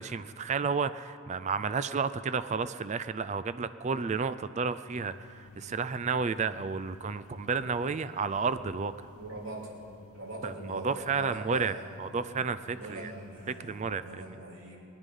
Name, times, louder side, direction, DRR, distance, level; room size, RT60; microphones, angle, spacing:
voice 1, 0.0-8.9 10.4-13.1 13.6-14.2, right 5 dB, 30° right, 13 dB, 0.4 m, -31 dB
sound 1, 4.9-13.9, left 4 dB, 80° left, 0.6 m, -53 dB
voice 2, 9.2-9.7 10.1-11.9 12.7-14.8, right 1 dB, 60° right, -3 dB, 3.5 m, -42 dB
21.5 x 10.0 x 5.4 m, 2.5 s
head